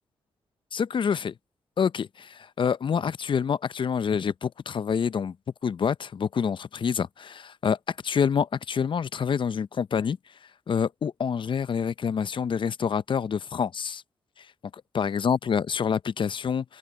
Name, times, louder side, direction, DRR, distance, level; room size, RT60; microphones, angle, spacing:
voice 1, 0.7-1.3 1.8-5.3 5.6-7.8 8.0-10.2 10.7-14.0 14.9-16.8, left 7 dB, 55° left, 0.6 m, -27 dB
open air
supercardioid pair, 55°, 10 cm